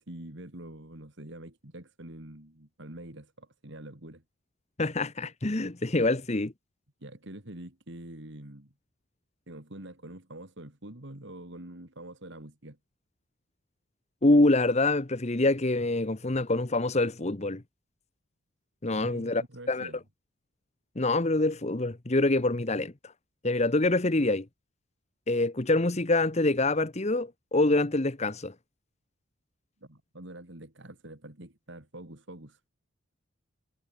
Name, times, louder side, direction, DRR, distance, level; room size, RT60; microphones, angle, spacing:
voice 1, 0.0-4.2 7.0-8.7 9.5-12.8 18.9-20.0 29.8-32.6, right 1 dB, 55° right, 2.9 m, -45 dB
voice 2, 4.8-6.5 14.2-17.6 18.8-19.4 19.7-19.9 21.0-22.9 23.4-24.4 25.3-28.5, left 2 dB, 30° left, 1.0 m, -25 dB
head